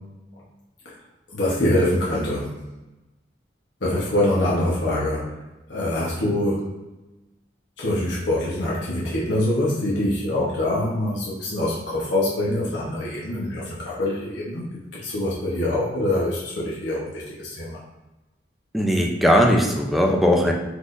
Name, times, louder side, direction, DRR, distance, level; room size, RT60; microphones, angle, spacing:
voice 1, 1.3-2.6 3.8-5.4 5.7-6.7 7.8-17.8, left 1 dB, 75° left, -6 dB, 1.0 m, -24 dB
voice 2, 18.7-20.5, equal, ahead, 1 dB, 0.5 m, -18 dB
4.8 x 4.1 x 2.6 m, 1.1 s
head